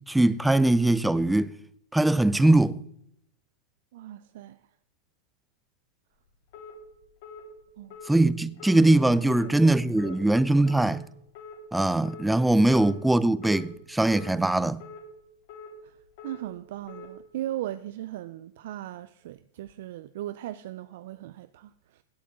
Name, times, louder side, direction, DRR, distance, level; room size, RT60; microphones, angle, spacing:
voice 1, 0.0-1.5 1.9-2.8 8.1-11.0 11.7-14.8, right 2 dB, 5° right, 0.5 m, -21 dB
voice 2, 3.9-4.6 7.8-8.0 9.2-10.3 15.8-16.0 16.2-22.0, right 13 dB, 65° right, 0.5 m, -38 dB
sound 1, 6.5-6.7 7.2-7.4 7.9-8.1 8.6-8.8 9.3-9.5 10.0-10.2 10.7-10.9 11.3-11.6 12.0-12.3 12.7-12.9 13.4-13.6 14.1-14.3 14.8-15.0 15.5-15.7 16.2-16.4 16.9-17.1, left 6 dB, 60° left, 4.0 m, -44 dB
17.0 x 8.4 x 3.7 m
hypercardioid pair, 120°, 0 cm